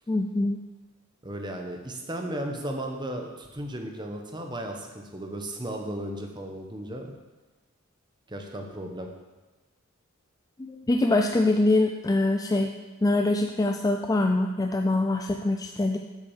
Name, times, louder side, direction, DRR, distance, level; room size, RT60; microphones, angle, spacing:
voice 1, 0.1-0.6 10.6-12.7 13.0-16.0, left 2 dB, 15° left, 4 dB, 0.4 m, -24 dB
voice 2, 1.2-7.1 8.3-9.1, right 1 dB, 20° right, 3 dB, 1.2 m, -35 dB
8.5 x 6.2 x 7.4 m, 1.2 s
head